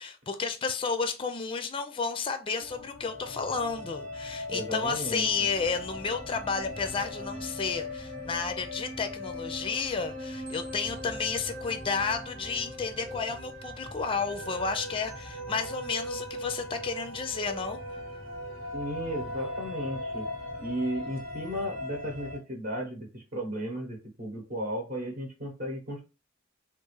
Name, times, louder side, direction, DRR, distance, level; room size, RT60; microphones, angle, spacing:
voice 1, 0.0-17.8, left 5 dB, 25° left, 0.4 m, -32 dB
sound 1, 2.6-22.4, left 1 dB, 85° right, 1.4 m, -39 dB
voice 2, 4.5-5.3 18.7-20.3 20.6-26.0, equal, 45° right, 0.9 m, -34 dB
3.5 x 2.4 x 3.1 m
head